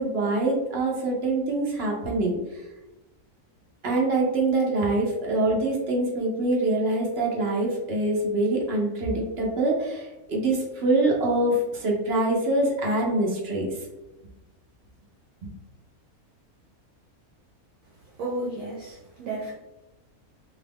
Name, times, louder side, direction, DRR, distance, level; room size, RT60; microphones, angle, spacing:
voice 1, 0.0-2.4 3.8-13.8, right 2 dB, 55° right, -1 dB, 0.8 m, -24 dB
voice 2, 18.2-19.5, right 2 dB, 75° right, -3 dB, 1.1 m, -32 dB
2.8 x 2.4 x 3.4 m, 1.0 s
omnidirectional pair, 1.6 m